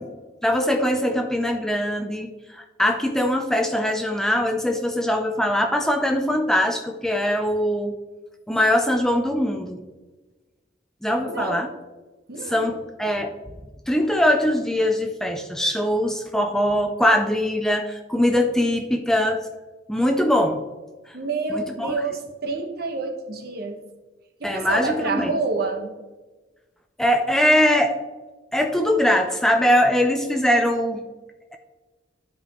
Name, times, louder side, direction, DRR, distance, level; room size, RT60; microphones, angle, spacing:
voice 1, 0.4-7.9 8.5-9.8 11.0-11.7 12.5-13.3 13.9-19.4 19.9-20.6 21.5-21.9 24.4-25.3 27.0-28.0 28.5-31.0, left 1 dB, 5° left, 4 dB, 0.4 m, -22 dB
voice 2, 11.3-11.7 12.3-12.7 21.1-23.8 24.4-25.9, right 3 dB, 55° right, 4 dB, 1.1 m, -28 dB
12.0 x 5.1 x 3.0 m, 1.2 s
head